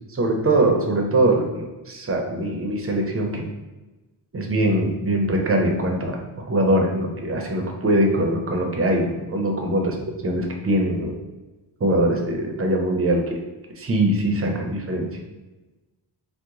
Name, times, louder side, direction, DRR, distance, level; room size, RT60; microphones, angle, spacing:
voice 1, 0.1-3.4 4.3-9.9 10.2-11.2 11.8-13.4 13.8-15.1, right 1 dB, 30° right, 2 dB, 0.7 m, -22 dB
2.9 x 2.1 x 3.7 m, 1.1 s
cardioid pair, 70°, 43 cm